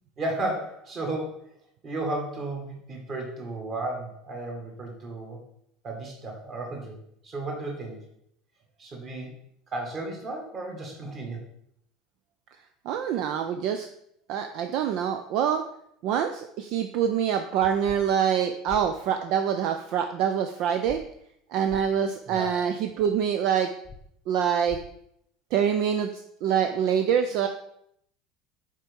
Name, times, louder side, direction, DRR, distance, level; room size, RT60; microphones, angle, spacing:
voice 1, 0.2-1.4 1.8-5.4 5.8-6.9 7.2-8.0 8.8-9.3 9.7-11.5 22.3-22.5, right 2 dB, 25° right, 1 dB, 1.9 m, -33 dB
voice 2, 12.5-13.9 14.3-15.6 16.0-21.0 21.5-23.7 24.3-24.8 25.5-27.5, right 8 dB, 50° right, 7 dB, 0.5 m, -25 dB
sound 1, 17.8-18.0 18.7-18.8 20.8-21.0 21.7-21.8 23.8-24.0 24.7-24.8, left 5 dB, 15° left, 0.7 m, -42 dB
7.3 x 4.6 x 5.2 m, 0.72 s
cardioid pair, 175°, 0 cm